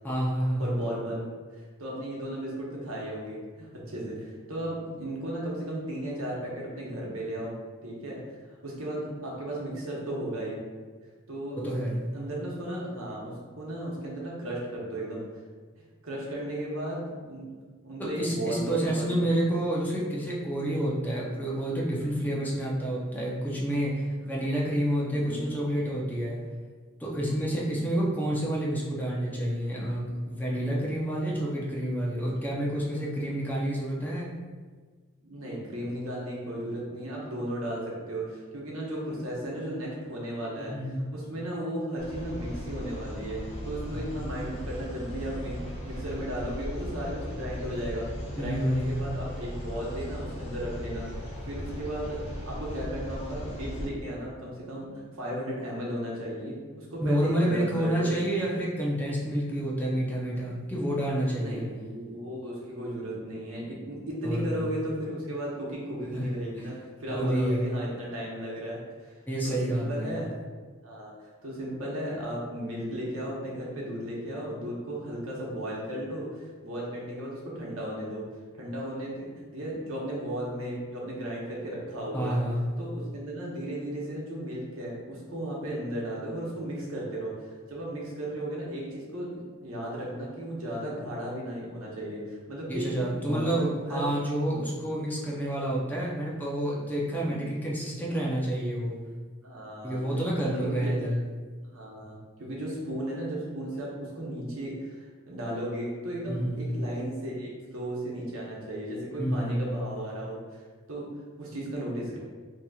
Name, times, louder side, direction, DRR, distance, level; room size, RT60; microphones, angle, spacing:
voice 1, 0.0-0.7 11.6-12.0 18.0-26.4 27.0-34.3 40.6-41.1 43.9-44.0 48.4-48.9 57.0-61.6 64.2-64.7 66.1-66.2 67.1-67.7 69.3-70.2 82.1-82.7 92.7-99.0 99.8-101.2 106.3-106.7 109.2-109.6, right 1 dB, 10° left, -5 dB, 0.6 m, -29 dB
voice 2, 0.6-1.3 1.8-7.5 7.8-8.4 8.6-10.6 11.3-11.7 12.1-15.2 16.0-17.5 17.8-19.2 22.3-22.5 25.2-25.4 35.2-40.7 41.1-54.9 55.2-58.1 60.3-60.7 61.3-70.3 70.8-78.2 78.5-82.4 82.8-94.1 94.4-94.7 97.1-97.3 99.4-100.0 100.5-101.0 101.6-110.6 110.9-111.1 111.4-112.2, right 1 dB, 85° right, -4 dB, 1.0 m, -35 dB
sound 1, 42.0-53.9, equal, 30° left, 1.0 m, -37 dB
4.0 x 2.9 x 2.3 m, 1.5 s
head